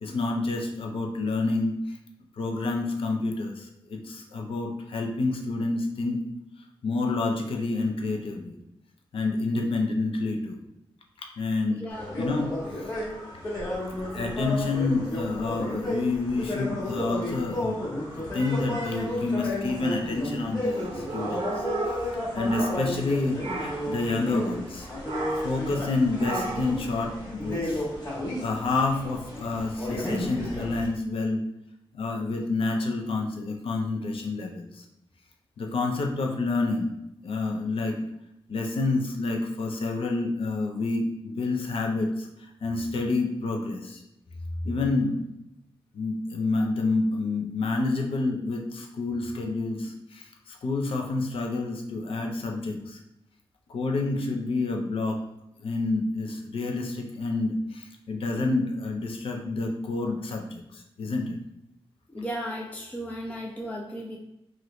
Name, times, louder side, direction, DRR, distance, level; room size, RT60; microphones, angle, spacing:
voice 1, 0.0-1.8 2.4-6.2 6.8-8.5 9.1-10.6 11.4-11.9 12.2-12.9 14.1-17.8 18.1-24.9 25.4-27.9 28.4-31.5 31.9-34.8 35.6-36.9 37.2-38.1 38.5-42.3 42.6-44.0 44.6-45.3 45.9-53.0 53.7-55.2 55.6-61.4, left 3 dB, 70° left, 2 dB, 0.5 m, -28 dB
voice 2, 11.7-12.3 62.1-64.2, equal, 15° left, -1 dB, 0.4 m, -35 dB
sound 1, 11.9-30.9, left 1 dB, 40° left, 1.2 m, -33 dB
sound 2, 20.7-23.1 23.4-23.9 25.0-25.6 26.2-26.8, right 3 dB, 85° right, 0.6 m, -34 dB
2.9 x 2.5 x 3.1 m, 0.84 s
wide cardioid pair, 90°, 10 cm